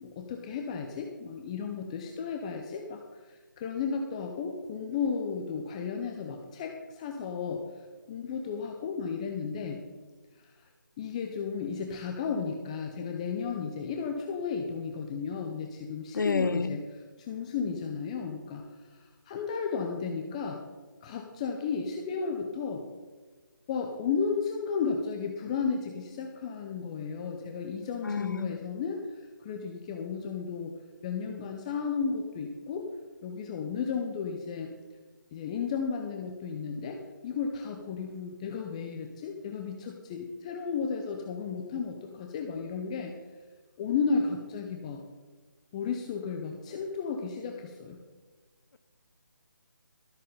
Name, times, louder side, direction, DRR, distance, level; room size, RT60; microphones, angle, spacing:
voice 1, 0.0-3.0 3.3-9.8 10.4-10.5 11.0-18.6 18.9-20.6 21.0-22.9 23.7-30.7 31.0-32.9 33.2-34.7 35.3-43.1 43.8-45.0 45.7-48.0, left 5 dB, 20° left, 2 dB, 0.7 m, -34 dB
voice 2, 16.1-16.8 28.0-28.5, left 4 dB, 70° left, 14 dB, 0.6 m, -29 dB
13.0 x 8.3 x 5.3 m, 1.4 s
figure-of-eight pair, 160°, 11 cm